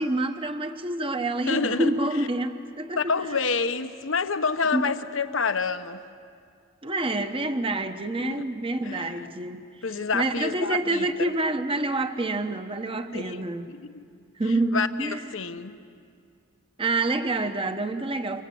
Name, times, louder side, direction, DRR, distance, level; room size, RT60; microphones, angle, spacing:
voice 1, 0.0-3.4 4.7-4.9 6.8-9.7 10.1-13.8 14.4-15.3 16.8-18.4, right 2 dB, 30° right, 8 dB, 1.1 m, -27 dB
voice 2, 1.5-1.9 3.0-6.0 8.2-8.5 8.8-9.3 9.8-11.3 13.1-13.4 13.7-14.0 14.7-15.8, left 5 dB, 70° left, 9 dB, 1.1 m, -28 dB
28.5 x 25.0 x 8.0 m, 2.3 s
head